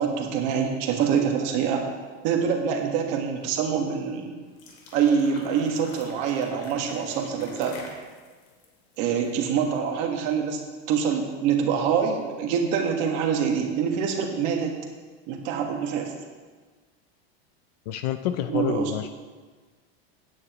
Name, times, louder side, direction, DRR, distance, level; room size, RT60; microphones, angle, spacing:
voice 1, 0.0-1.9 2.2-4.3 4.9-7.8 9.0-10.6 10.9-14.7 15.3-16.1 18.5-18.9, right 7 dB, 40° right, 2 dB, 1.6 m, -25 dB
sound 1, 4.4-9.7, left 3 dB, 90° left, 3.1 m, -46 dB
voice 2, 17.9-19.1, left 12 dB, 40° left, 10 dB, 0.4 m, -28 dB
16.5 x 9.7 x 3.0 m, 1.4 s
supercardioid pair, 175°, 32 cm